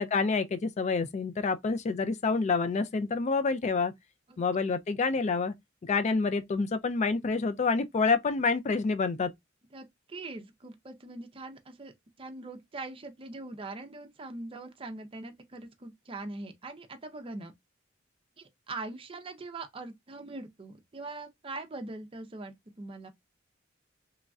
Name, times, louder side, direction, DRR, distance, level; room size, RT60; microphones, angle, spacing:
voice 1, 0.0-3.9 4.4-5.5 5.8-9.3, left 4 dB, 35° left, 0.4 m, -28 dB
voice 2, 9.7-11.9 12.2-17.5 18.4-23.1, right 2 dB, 30° right, 0.5 m, -42 dB
3.1 x 2.5 x 2.3 m
head